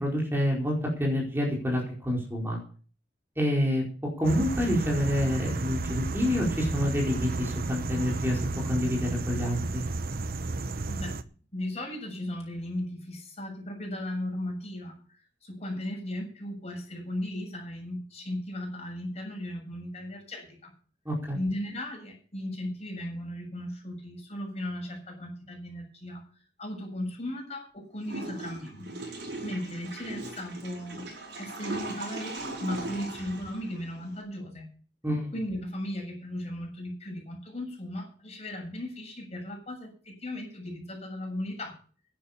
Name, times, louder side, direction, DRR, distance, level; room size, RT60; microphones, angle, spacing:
voice 1, 0.0-2.6 3.4-3.8 4.2-8.4 8.7-9.8 21.0-21.4 35.0-35.4, equal, 15° right, -2 dB, 4.6 m, -27 dB
sound 1, 4.2-11.2, right 2 dB, 55° right, 0.8 m, -32 dB
voice 2, 10.9-11.2 11.5-15.0 15.4-20.7 21.3-26.2 26.6-29.0 29.4-31.1 31.4-34.7 35.3-41.8, left 1 dB, 40° left, 1 dB, 7.1 m, -36 dB
Water / Toilet flush, 28.0-34.2, right 2 dB, 85° right, 5.6 m, -39 dB
11.0 x 10.0 x 7.2 m, 0.40 s
head